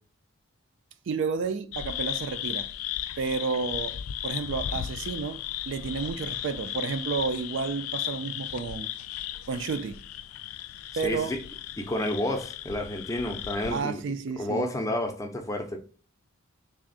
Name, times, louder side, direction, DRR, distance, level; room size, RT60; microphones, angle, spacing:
voice 1, 1.1-2.7 3.2-4.0 4.2-8.9 9.5-10.0 11.0-11.3 13.7-14.7, right 5 dB, 55° right, 0.3 m, -31 dB
sound 1, 1.7-13.8, left 11 dB, 80° left, 0.3 m, -36 dB
voice 2, 11.0-11.4 11.8-14.0 14.4-15.8, left 1 dB, 15° left, 0.5 m, -30 dB
3.4 x 2.4 x 3.7 m
head